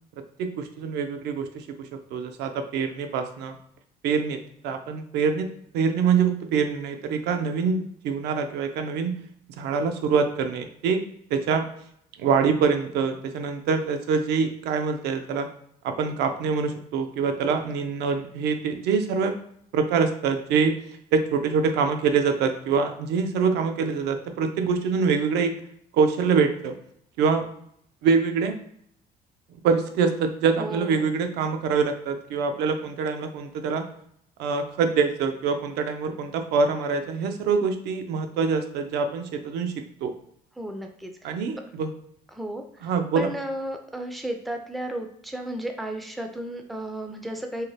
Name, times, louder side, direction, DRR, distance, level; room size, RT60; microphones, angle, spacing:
voice 1, 0.4-3.6 4.0-4.4 4.6-9.2 9.6-11.0 11.3-11.7 12.2-15.5 15.8-19.3 19.7-20.8 21.1-25.5 25.9-26.7 27.2-27.5 28.0-28.6 29.6-33.8 34.4-39.7 40.0-40.1 41.2-41.9 42.8-43.3, right 5 dB, 80° right, 6 dB, 0.4 m, -25 dB
voice 2, 30.6-31.1 40.6-41.3 42.3-42.9 43.1-47.6, right 1 dB, ahead, 4 dB, 0.3 m, -33 dB
2.7 x 2.0 x 3.1 m, 0.68 s
cardioid pair, 110°, 17 cm